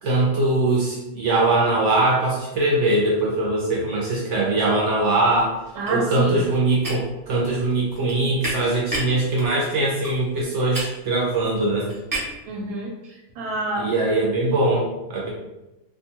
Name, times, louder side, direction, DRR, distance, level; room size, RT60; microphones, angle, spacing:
voice 1, 0.0-5.5 5.9-11.9 13.8-15.3, right 2 dB, 65° right, -3 dB, 0.8 m, -21 dB
sound 1, 5.4-12.5, right 1 dB, 25° right, 0.5 m, -34 dB
voice 2, 5.7-6.4 8.6-8.8 12.4-13.9, right 2 dB, 90° right, -3 dB, 1.1 m, -29 dB
2.6 x 2.2 x 2.8 m, 0.96 s
omnidirectional pair, 1.6 m